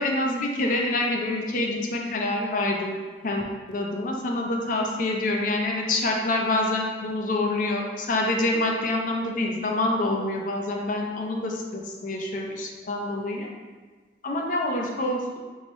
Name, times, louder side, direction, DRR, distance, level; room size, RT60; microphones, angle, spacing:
voice 1, 0.0-3.0 3.2-3.4 3.7-13.5 14.2-15.4, left 2 dB, 45° left, 0 dB, 0.5 m, -26 dB
3.1 x 2.8 x 4.2 m, 1.4 s
head